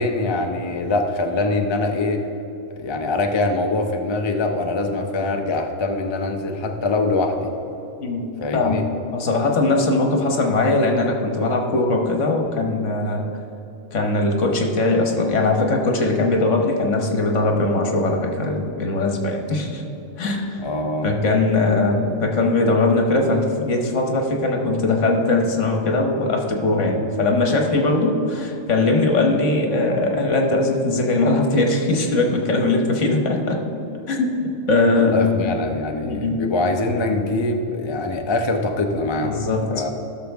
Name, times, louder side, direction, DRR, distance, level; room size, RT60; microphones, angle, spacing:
voice 1, 0.0-2.2 2.8-7.5 8.4-8.9 20.6-21.1 35.0-39.9, left 2 dB, 35° left, 4 dB, 0.5 m, -23 dB
voice 2, 8.5-8.8 9.1-13.2 13.9-19.8 20.2-20.6 21.0-33.6 34.1-34.4 34.7-35.5 36.0-36.4 39.2-39.6, left 2 dB, 65° left, 2 dB, 1.5 m, -20 dB
15.5 x 6.5 x 3.5 m, 2.9 s
omnidirectional pair, 1.4 m